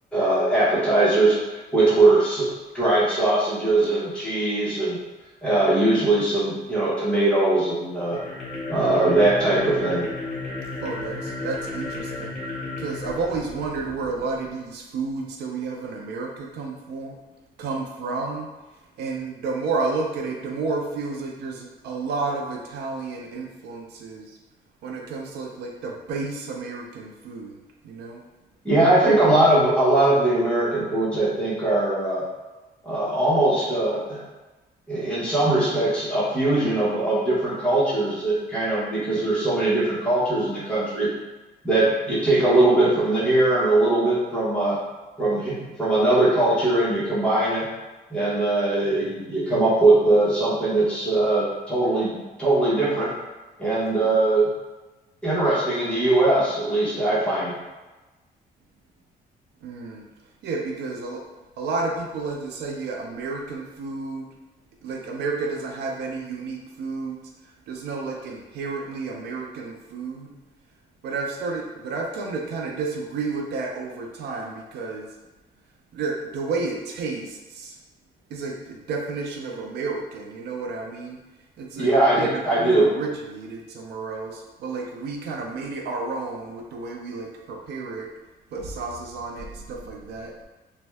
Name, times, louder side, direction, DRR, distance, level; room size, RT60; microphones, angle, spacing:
voice 1, 0.1-2.5 2.7-5.0 5.4-8.2 8.7-10.1 28.6-32.2 32.8-34.2 34.9-41.1 41.6-44.8 45.2-47.7 48.1-53.1 53.6-54.5 55.2-57.6 81.8-82.9, right 2 dB, 5° left, -9 dB, 0.9 m, -21 dB
sound 1, 8.0-14.3, left 2 dB, 45° left, 1.0 m, -34 dB
voice 2, 10.8-12.4 12.8-17.2 17.6-18.5 19.0-24.4 24.8-27.6 27.8-28.2 48.9-49.0 54.0-54.1 59.6-60.1 60.4-61.2 61.6-64.3 64.8-70.4 71.0-75.1 75.9-77.8 78.3-81.2 81.6-88.1 88.5-90.4, right 4 dB, 80° right, 1 dB, 0.4 m, -31 dB
2.6 x 2.2 x 3.2 m, 1.2 s
cardioid pair, 155°, 17 cm